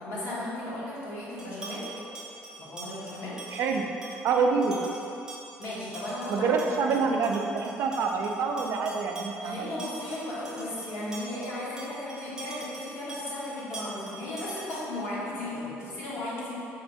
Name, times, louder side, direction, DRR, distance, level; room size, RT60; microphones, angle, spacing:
voice 1, 0.0-1.9 2.6-3.4 5.6-6.6 6.8-7.0 9.4-16.5, left 1 dB, 70° left, -7 dB, 1.1 m, -35 dB
sound 1, 1.4-15.1, right 2 dB, 10° right, 0.6 m, -44 dB
voice 2, 3.5-3.8 4.2-4.8 6.3-9.7, right 5 dB, 65° right, 2 dB, 0.3 m, -26 dB
4.3 x 3.0 x 2.6 m, 2.8 s
cardioid pair, 115°, 5 cm